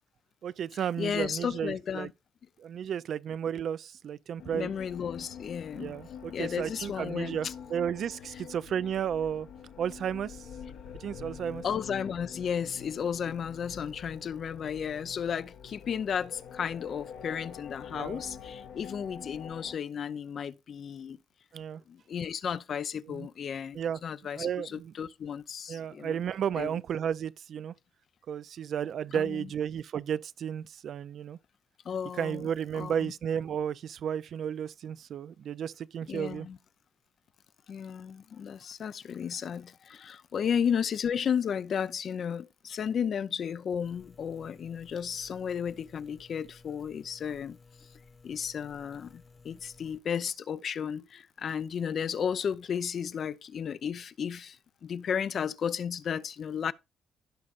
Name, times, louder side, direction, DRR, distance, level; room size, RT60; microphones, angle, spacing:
voice 1, 0.4-2.1 2.6-4.7 5.8-9.5 9.8-10.5 11.0-11.6 17.9-18.2 21.5-21.8 23.1-23.3 23.7-24.0 24.4-24.9 25.7-27.7 28.3-31.4 32.2-36.5, right 8 dB, 65° right, 0.4 m, -33 dB
voice 2, 1.0-2.1 4.5-6.0 6.3-7.5 11.6-21.2 21.9-26.2 26.6-26.7 29.1-29.5 31.8-32.5 32.7-33.1 36.1-36.6 37.7-47.6 48.2-56.7, left 7 dB, 55° left, 0.5 m, -33 dB
sound 1, 4.4-19.8, left 7 dB, 80° left, 1.4 m, -46 dB
sound 2, 43.8-50.0, left 4 dB, 15° left, 1.0 m, -57 dB
16.0 x 5.4 x 2.5 m
cardioid pair, 90°, 0 cm